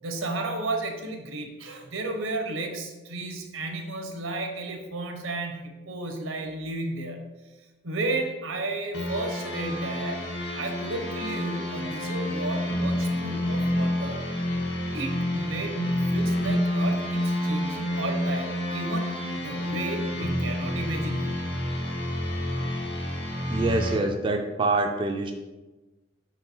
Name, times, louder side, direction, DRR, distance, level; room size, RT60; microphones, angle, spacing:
voice 1, 0.0-7.2 7.8-10.2 10.5-14.2 14.9-19.1 19.4-21.3, right 2 dB, 85° right, 4 dB, 1.1 m, -33 dB
sound 1, 8.9-23.9, left 1 dB, 65° left, 2.1 m, -28 dB
voice 2, 23.5-25.3, right 2 dB, 25° right, 3 dB, 0.4 m, -25 dB
4.6 x 4.4 x 5.5 m, 1.2 s
head